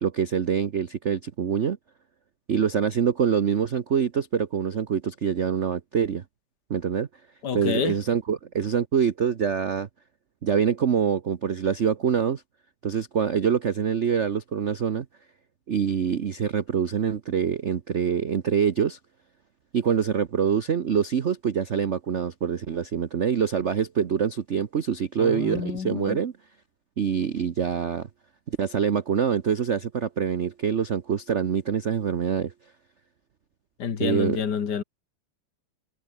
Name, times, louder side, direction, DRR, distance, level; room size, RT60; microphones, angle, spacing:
voice 1, 0.0-1.8 2.5-6.2 6.7-7.1 7.5-9.9 10.4-12.4 12.8-15.1 15.7-19.0 19.7-26.3 27.0-28.1 28.5-32.5 34.0-34.4, right 7 dB, 50° right, 0.8 m, -25 dB
voice 2, 7.4-8.0 25.2-26.2 33.8-34.8, left 7 dB, 50° left, 2.4 m, -28 dB
omnidirectional pair, 2.4 m